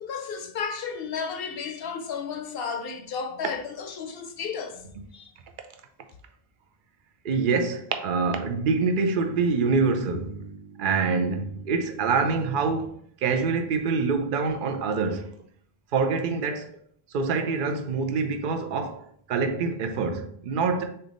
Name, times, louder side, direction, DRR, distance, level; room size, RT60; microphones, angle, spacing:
voice 1, 0.0-4.9 5.1-5.3, left 6 dB, 70° left, 0.7 m, -33 dB
voice 2, 7.2-12.9 13.2-15.3 15.9-16.7 17.1-19.0 19.3-20.8, right 4 dB, 60° right, 0.7 m, -25 dB
3.9 x 3.5 x 3.8 m
omnidirectional pair, 1.1 m